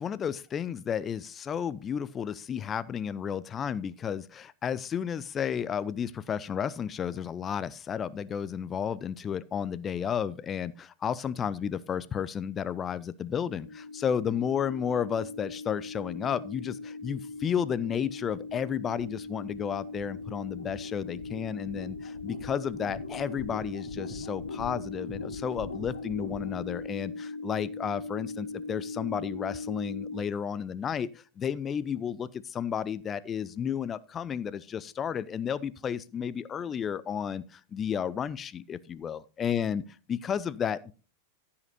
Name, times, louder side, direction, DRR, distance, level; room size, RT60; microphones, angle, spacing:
voice 1, 0.0-39.8 40.1-40.9, left 8 dB, 25° left, 0.6 m, -32 dB
sound 1, 13.3-30.2, left 3 dB, 70° left, 2.8 m, -39 dB
14.5 x 5.8 x 4.1 m
figure-of-eight pair, 90°, 0 cm